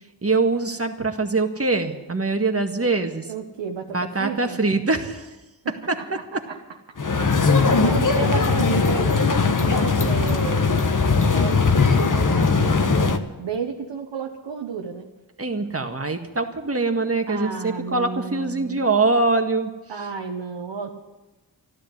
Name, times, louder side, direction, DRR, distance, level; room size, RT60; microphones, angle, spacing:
voice 1, 0.2-3.3 3.9-5.3 5.7-6.4 15.4-19.7, right 3 dB, 30° right, 5 dB, 1.8 m, -23 dB
voice 2, 3.3-4.6 5.6-6.6 7.8-10.8 11.3-15.1 17.3-18.9 19.9-20.9, right 6 dB, 75° right, 2 dB, 1.3 m, -33 dB
sound 1, 7.0-13.2, left 4 dB, 45° left, 1.3 m, -19 dB
13.0 x 12.0 x 8.2 m, 1.1 s
cardioid pair, 50°, 45 cm